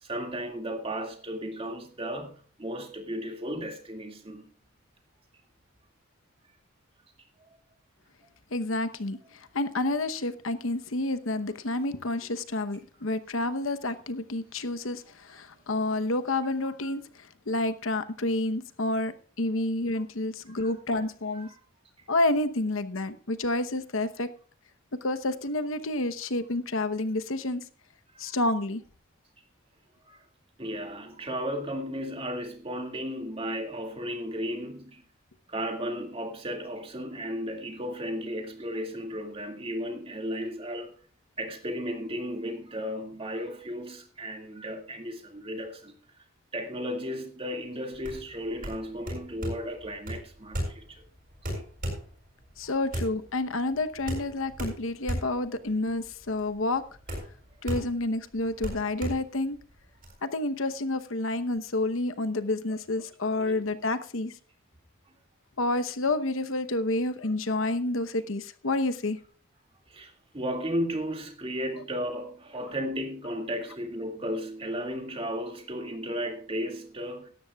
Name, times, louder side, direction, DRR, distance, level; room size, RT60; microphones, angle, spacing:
voice 1, 0.0-4.5 7.4-7.6 20.5-20.7 21.3-21.6 28.1-28.4 30.1-30.2 30.6-35.0 35.5-40.9 41.4-45.9 46.5-51.1 63.4-63.6 69.9-77.3, equal, 25° right, 2.1 m, -34 dB
voice 2, 8.5-19.1 19.4-21.5 22.1-24.3 25.0-27.6 28.2-28.8 52.6-56.8 57.6-59.6 60.2-64.3 65.6-69.2, left 2 dB, 70° left, 1.0 m, -29 dB
sound 1, 47.9-60.1, equal, 40° right, 6.8 m, -36 dB
17.5 x 13.0 x 2.4 m
head